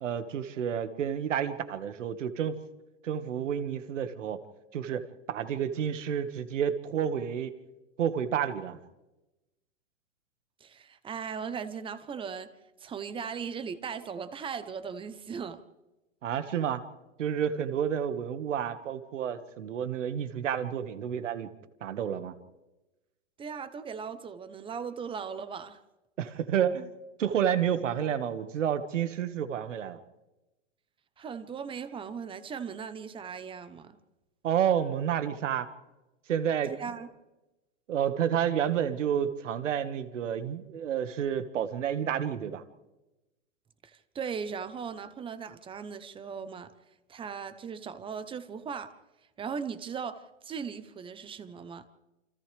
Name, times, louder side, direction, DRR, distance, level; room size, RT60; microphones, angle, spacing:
voice 1, 0.0-2.6 3.0-4.4 4.7-7.5 8.0-8.8 16.2-16.8 17.2-21.5 21.8-22.3 26.2-26.9 27.2-30.0 34.4-35.7 36.3-36.7 37.9-42.6, right 9 dB, 80° right, 1.9 m, -30 dB
voice 2, 10.6-12.5 12.8-15.6 23.4-25.8 31.2-34.0 36.7-37.1 43.8-46.7 47.1-49.0 49.4-51.9, right 6 dB, 15° right, 0.9 m, -38 dB
28.5 x 26.5 x 3.5 m
hypercardioid pair, 140°, 36 cm